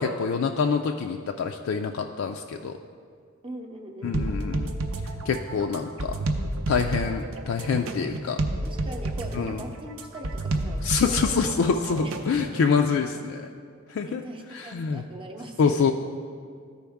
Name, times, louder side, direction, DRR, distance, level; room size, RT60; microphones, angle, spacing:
voice 1, 0.0-2.8 4.0-4.7 5.3-6.2 6.7-8.4 9.3-9.6 10.8-13.5 13.9-14.2 14.5-15.0 15.6-15.9, left 5 dB, 65° left, 3 dB, 0.3 m, -26 dB
voice 2, 3.4-4.3 8.6-12.1 13.2-13.3 14.1-15.9, right 1 dB, 25° right, 3 dB, 0.7 m, -41 dB
sound 1, 4.1-12.6, right 2 dB, 75° right, 0.6 m, -30 dB
13.5 x 4.6 x 3.5 m, 2.1 s
head